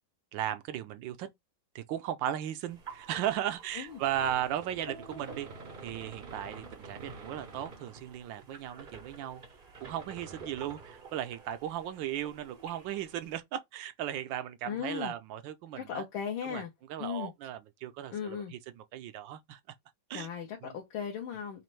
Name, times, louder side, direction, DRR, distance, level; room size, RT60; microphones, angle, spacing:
voice 1, 0.3-1.3 1.7-5.5 5.8-9.4 9.8-16.0 16.4-16.6 16.9-19.6 20.1-20.3 20.6-20.8, right 11 dB, 75° right, 1.2 m, -36 dB
sound 1, 2.7-13.4, right 4 dB, 50° right, 0.6 m, -48 dB
voice 2, 14.6-15.1 15.8-16.7 17.0-17.3 18.1-18.5 20.1-21.6, left 8 dB, 75° left, 1.6 m, -37 dB
4.2 x 2.5 x 3.1 m
omnidirectional pair, 2.2 m